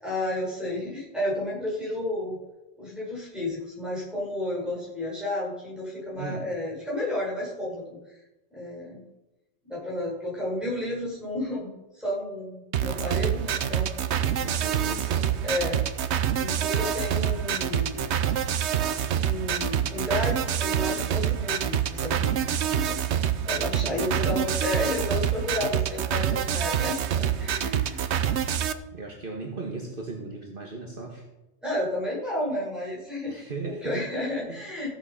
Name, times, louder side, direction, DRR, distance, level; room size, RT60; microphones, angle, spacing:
voice 1, 0.0-2.4 2.8-8.0 8.5-9.1 9.7-14.0 15.4-15.8 16.4-18.0 19.2-23.0 23.4-28.0 31.6-34.9, left 1 dB, ahead, -6 dB, 5.6 m, -32 dB
sound 1, 12.7-28.7, right 9 dB, 80° right, 1.0 m, -26 dB
voice 2, 14.4-15.3 23.7-24.2 28.9-31.2 33.3-34.1 34.5-34.7, right 3 dB, 55° right, 1 dB, 1.6 m, -37 dB
15.0 x 7.6 x 5.7 m, 0.98 s
omnidirectional pair, 1.1 m